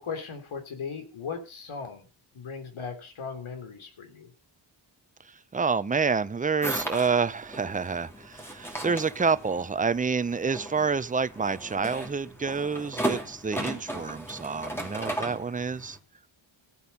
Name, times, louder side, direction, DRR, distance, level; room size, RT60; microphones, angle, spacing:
voice 1, 0.0-2.1 2.3-4.3, left 5 dB, 80° left, 3.3 m, -37 dB
voice 2, 5.5-16.0, right 5 dB, 15° right, 0.5 m, -28 dB
sound 1, 6.6-16.0, right 1 dB, 5° left, 2.8 m, -36 dB
15.0 x 8.3 x 5.6 m
wide cardioid pair, 145°, 48 cm